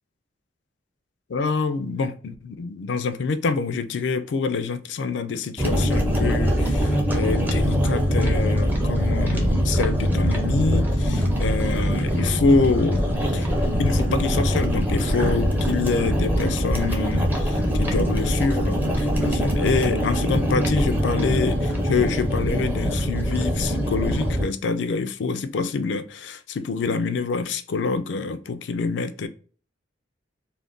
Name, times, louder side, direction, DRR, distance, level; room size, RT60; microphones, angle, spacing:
voice 1, 1.3-13.1 13.3-13.5 13.8-29.3, left 4 dB, 70° left, 0.4 m, -26 dB
sound 1, 5.6-24.4, equal, 10° right, 0.5 m, -22 dB
2.4 x 2.2 x 3.4 m
head